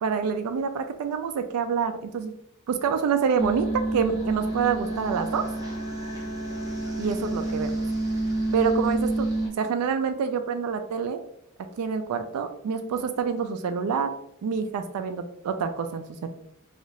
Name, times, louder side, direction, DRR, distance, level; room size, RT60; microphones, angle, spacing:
voice 1, 0.0-2.3 2.7-5.5 7.0-7.8 8.5-9.3 9.6-11.2 11.8-14.1 14.4-16.3, right 6 dB, 90° right, 7 dB, 0.3 m, -27 dB
sound 1, 3.4-9.5, right 2 dB, 15° right, 0.7 m, -28 dB
2.6 x 2.4 x 3.0 m, 0.78 s
head